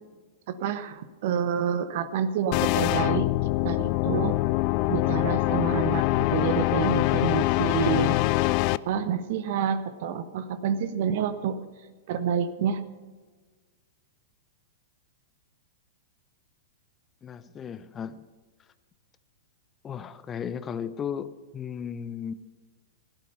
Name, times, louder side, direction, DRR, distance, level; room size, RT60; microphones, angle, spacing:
voice 1, 0.5-3.3 3.6-4.4 4.9-8.2 8.9-11.6 12.1-12.8, right 8 dB, 50° right, 13 dB, 1.2 m, -28 dB
sound 1, 2.5-8.8, left 19 dB, 40° left, 0.4 m, -24 dB
voice 2, 17.2-18.3 19.8-22.3, left 7 dB, 20° left, 14 dB, 0.7 m, -35 dB
17.0 x 12.0 x 5.6 m, 1.4 s
figure-of-eight pair, 100°, 0 cm